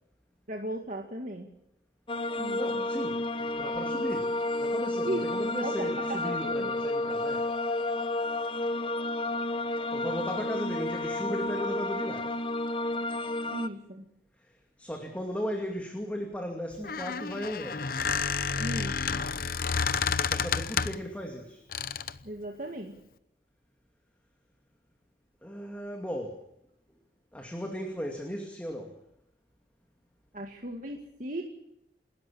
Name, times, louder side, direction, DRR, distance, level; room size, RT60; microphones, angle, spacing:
voice 1, 0.5-1.5 2.4-2.8 5.0-6.7 13.5-14.1 18.6-19.2 22.2-23.0 30.3-31.4, right 1 dB, 45° right, 2 dB, 2.1 m, -37 dB
sound 1, 2.1-13.7, left 2 dB, 30° left, 1.0 m, -31 dB
voice 2, 2.6-7.5 9.9-12.4 14.4-17.9 20.1-21.6 25.4-26.4 27.3-29.0, equal, 10° left, 2 dB, 2.5 m, -36 dB
Squeak, 16.7-21.1 21.7-22.2, left 6 dB, 55° left, 0.8 m, -30 dB
28.5 x 13.5 x 8.7 m, 0.79 s
head